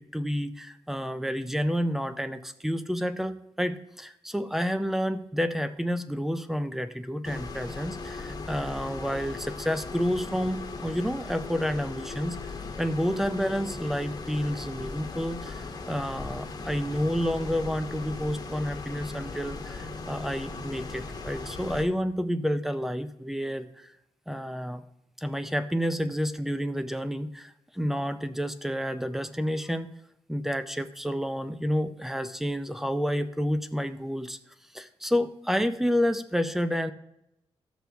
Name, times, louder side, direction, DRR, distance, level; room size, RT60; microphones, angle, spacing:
voice 1, 0.0-23.9 24.3-24.8 25.2-29.9 30.3-34.4 34.7-36.9, equal, 5° right, 11 dB, 0.5 m, -30 dB
sound 1, 7.2-21.8, left 3 dB, 35° left, 1.1 m, -38 dB
15.0 x 6.1 x 3.4 m, 0.85 s
wide cardioid pair, 150°, 11 cm